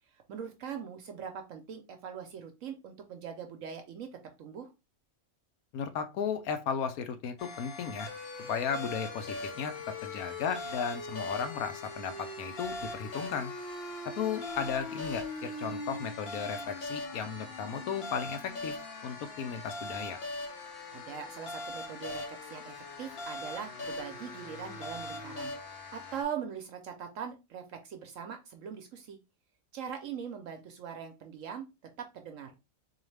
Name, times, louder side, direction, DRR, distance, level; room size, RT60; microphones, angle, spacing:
voice 1, 0.3-4.1 4.4-4.7 20.6-29.2 29.7-31.7 32.0-32.5, right 7 dB, 70° right, 1.0 m, -41 dB
voice 2, 5.7-8.1 8.4-13.5 14.1-18.8 19.0-20.2, left 7 dB, 80° left, 1.1 m, -35 dB
sound 1, 7.4-26.2, left 2 dB, 50° left, 0.9 m, -40 dB
4.0 x 2.8 x 3.2 m
omnidirectional pair, 1.5 m